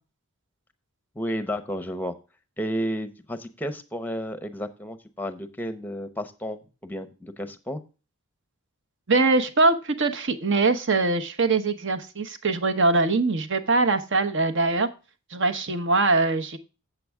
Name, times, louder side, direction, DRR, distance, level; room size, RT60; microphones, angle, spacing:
voice 1, 1.1-2.1 2.6-7.8, equal, 10° left, 10 dB, 0.7 m, -32 dB
voice 2, 9.1-14.9 15.3-16.6, right 3 dB, 55° right, 8 dB, 1.0 m, -22 dB
8.1 x 7.7 x 3.4 m, 0.32 s
head